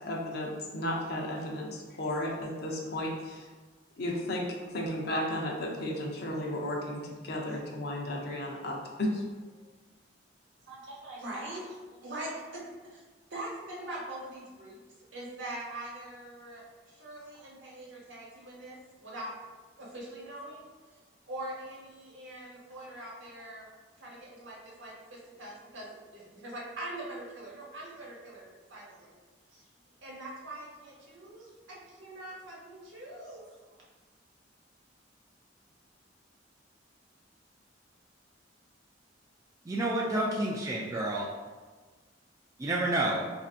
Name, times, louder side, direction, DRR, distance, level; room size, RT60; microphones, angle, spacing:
voice 1, 0.0-3.4 4.0-4.5 4.7-9.2, left 1 dB, 55° left, -1 dB, 0.6 m, -34 dB
voice 2, 10.7-12.6 12.9-13.0 13.3-14.8 15.1-19.3 19.8-20.7 21.3-29.1 29.5-29.6 30.0-33.5, right 1 dB, 75° right, -4 dB, 1.0 m, -43 dB
voice 3, 39.7-41.3 42.6-43.2, right 1 dB, 20° right, -4 dB, 0.3 m, -29 dB
4.4 x 2.6 x 2.4 m, 1.4 s
head